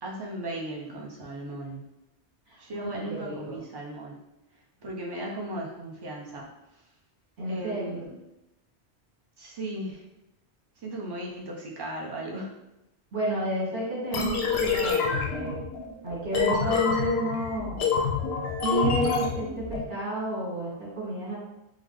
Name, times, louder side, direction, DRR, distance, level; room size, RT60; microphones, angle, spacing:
voice 1, 0.0-1.8 2.6-4.2 4.8-6.5 7.5-8.2 9.4-10.0 10.8-12.5, right 1 dB, 30° right, -2 dB, 0.4 m, -36 dB
voice 2, 2.5-3.6 7.4-8.0 13.1-15.6 16.0-17.9 18.6-21.4, right 1 dB, 75° right, -8 dB, 2.0 m, -31 dB
sound 1, 14.1-19.8, left 5 dB, 70° left, 0.7 m, -27 dB
3.9 x 2.0 x 3.1 m, 0.91 s
omnidirectional pair, 1.2 m